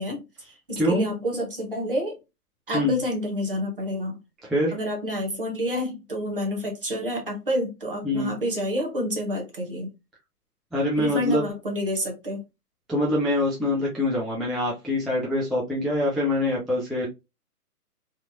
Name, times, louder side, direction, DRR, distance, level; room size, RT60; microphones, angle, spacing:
voice 1, 0.0-2.2 2.7-4.2 4.7-9.9 11.0-12.4, equal, 35° right, 0.6 m, -29 dB
voice 2, 0.8-1.1 2.7-3.0 4.4-4.8 8.0-8.3 10.7-11.4 12.9-17.1, left 1 dB, ahead, 0.3 m, -24 dB
2.8 x 2.0 x 2.4 m
hypercardioid pair, 165°, 47 cm